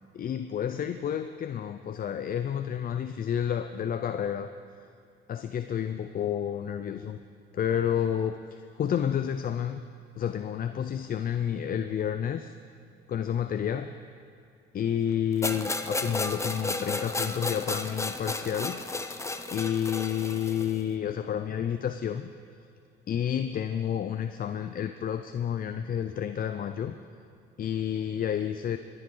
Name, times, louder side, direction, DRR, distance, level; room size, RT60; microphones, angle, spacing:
voice 1, 0.1-4.5 4.8-4.9 5.3-7.2 7.5-9.8 10.2-12.5 13.1-13.9 14.7-18.8 19.5-22.3 23.1-27.0 27.6-28.8, left 9 dB, 45° left, 9 dB, 0.5 m, -30 dB
sound 1, 15.4-20.8, left 2 dB, 15° left, 0.7 m, -33 dB
23.0 x 9.8 x 3.9 m, 2.4 s
cardioid pair, 90°, 20 cm